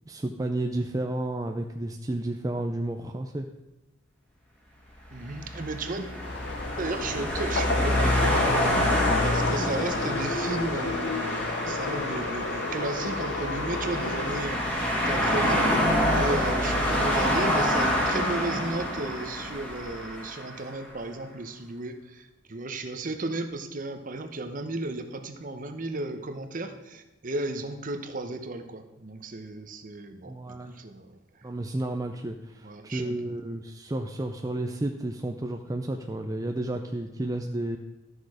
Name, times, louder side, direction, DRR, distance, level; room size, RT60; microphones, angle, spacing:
voice 1, 0.1-3.5 30.3-30.7 31.4-37.8, right 1 dB, 20° right, 4 dB, 0.4 m, -31 dB
voice 2, 5.1-6.1 6.8-8.8 9.2-15.9 16.1-31.2 32.6-33.1, right 2 dB, 40° right, 7 dB, 0.9 m, -34 dB
sound 1, 5.2-20.6, equal, 5° left, 1.7 m, -27 dB
sound 2, 6.2-14.4, left 3 dB, 60° left, 0.6 m, -32 dB
12.5 x 6.4 x 4.9 m, 1.0 s
head